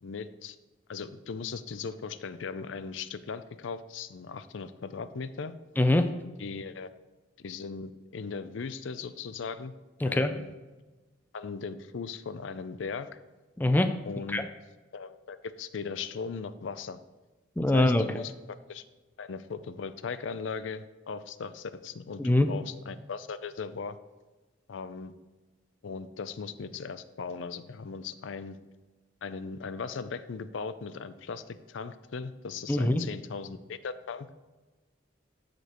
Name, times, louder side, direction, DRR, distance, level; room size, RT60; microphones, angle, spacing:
voice 1, 0.0-0.6 0.9-5.5 6.4-6.9 7.4-9.7 10.0-10.5 11.3-13.1 14.0-14.5 14.9-17.0 17.7-18.8 19.2-24.0 24.7-25.1 25.8-28.6 29.2-34.3, left 5 dB, 85° left, 13 dB, 0.5 m, -38 dB
voice 2, 5.8-6.1 10.0-10.3 13.6-14.0 14.3-14.4 17.6-18.0 22.2-22.5 32.7-33.0, left 1 dB, 10° left, 8 dB, 0.4 m, -23 dB
14.5 x 5.1 x 3.0 m, 1.2 s
head